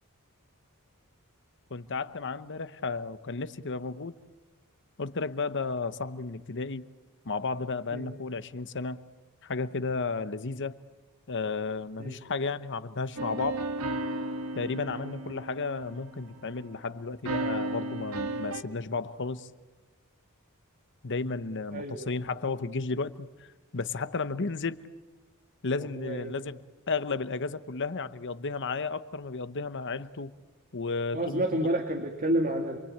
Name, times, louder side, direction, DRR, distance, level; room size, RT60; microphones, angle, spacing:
voice 1, 1.7-4.1 5.0-6.9 7.2-9.0 9.4-10.8 11.3-13.7 14.5-19.5 21.0-23.5 23.7-24.8 25.6-30.3 30.7-31.7, left 4 dB, 55° left, 1.0 m, -33 dB
sound 1, 13.2-16.4 17.2-18.6, right 2 dB, 75° right, 1.7 m, -34 dB
voice 2, 21.7-22.1 24.3-24.4 26.0-26.3 31.1-32.8, right 1 dB, 40° right, 2.2 m, -30 dB
28.0 x 23.5 x 8.8 m
head